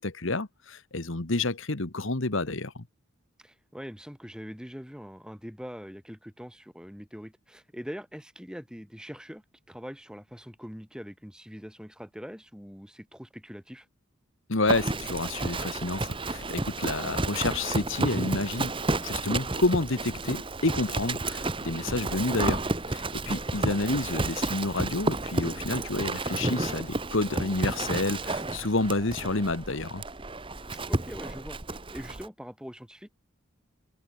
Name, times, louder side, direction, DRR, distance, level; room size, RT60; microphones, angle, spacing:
voice 1, 0.0-2.8 14.5-18.7 19.0-22.6 22.9-30.0, left 2 dB, 65° left, 1.5 m, -29 dB
voice 2, 3.4-13.9 23.1-23.5 28.4-28.5 30.7-33.1, equal, 5° right, 7.7 m, -43 dB
Livestock farm animals working animals, 14.7-32.3, right 2 dB, 25° right, 1.4 m, -31 dB
head